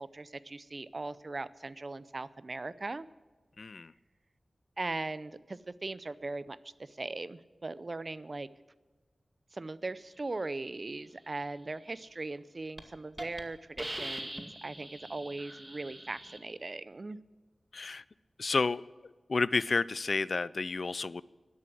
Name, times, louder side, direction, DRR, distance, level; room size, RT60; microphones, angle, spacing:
voice 1, 0.0-3.1 4.8-8.5 9.5-17.2, right 2 dB, 50° right, 17 dB, 0.6 m, -39 dB
voice 2, 3.6-3.9 17.7-18.0 18.4-18.8 19.3-21.2, left 4 dB, 65° left, 20 dB, 0.4 m, -30 dB
Hiss, 12.2-12.4 12.8-12.9 13.2-13.4 13.8-16.4, right 1 dB, 20° right, 2.1 m, -42 dB
12.5 x 11.5 x 7.7 m, 1.3 s
cardioid pair, 50°, 0 cm